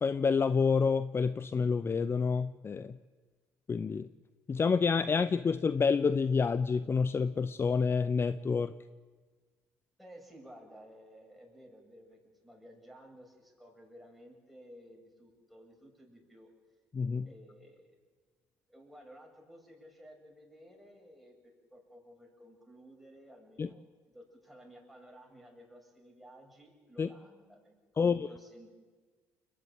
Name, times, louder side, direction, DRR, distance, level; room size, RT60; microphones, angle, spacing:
voice 1, 0.0-3.0 3.7-4.1 4.5-8.7 16.9-17.3 23.6-23.7 27.0-27.1 28.0-28.2, left 5 dB, 30° left, 15 dB, 0.7 m, -28 dB
voice 2, 10.0-16.5 17.3-18.0 18.7-23.8 24.1-28.8, equal, ahead, 0 dB, 7.6 m, -55 dB
30.0 x 11.0 x 8.9 m, 1.4 s
hypercardioid pair, 55°, 8 cm